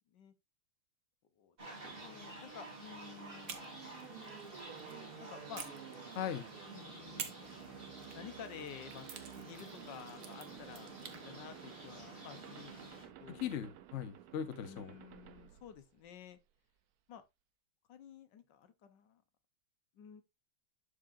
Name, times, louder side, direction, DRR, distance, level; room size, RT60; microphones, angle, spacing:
sound 1, 1.6-13.1, right 1 dB, 25° right, 3.0 m, -51 dB
sound 2, 1.8-16.4, right 11 dB, 80° right, 0.8 m, -54 dB
voice 1, 2.0-3.6 4.4-4.6 5.2-5.7 6.7-7.3 8.1-9.1 9.4-13.6 14.6-16.4 17.1-17.2 17.9-19.2 19.9-20.2, left 8 dB, 60° left, 1.4 m, -52 dB
sound 3, 3.4-5.0 5.5-6.6 7.2-11.2, right 7 dB, 55° right, 1.1 m, -50 dB
voice 2, 6.1-6.5 13.3-15.0, left 9 dB, 90° left, 0.6 m, -39 dB
11.5 x 4.9 x 2.5 m
omnidirectional pair, 2.3 m